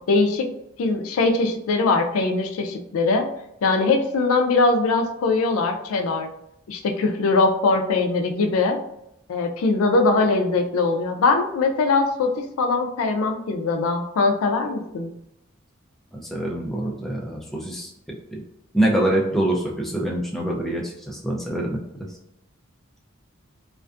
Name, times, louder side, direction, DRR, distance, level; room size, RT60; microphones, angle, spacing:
voice 1, 0.1-0.5 0.8-3.3 3.6-6.3 6.7-8.8 9.3-15.1, left 3 dB, 85° left, 6 dB, 0.4 m, -21 dB
voice 2, 16.1-17.9 18.3-18.4 18.7-21.8, right 1 dB, ahead, -3 dB, 0.3 m, -25 dB
2.4 x 2.2 x 2.4 m, 0.80 s
head